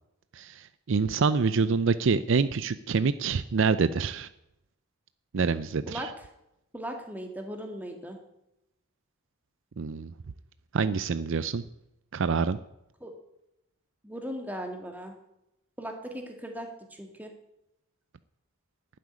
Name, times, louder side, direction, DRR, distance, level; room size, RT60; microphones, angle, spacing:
voice 1, 0.3-4.3 5.3-6.1 9.8-10.1 10.7-11.6 12.1-12.6, right 5 dB, 60° right, 14 dB, 0.5 m, -26 dB
voice 2, 6.7-8.2 13.0-13.1 14.0-15.1 15.8-17.3, equal, 10° right, 3 dB, 2.0 m, -38 dB
12.0 x 7.7 x 9.8 m, 0.86 s
head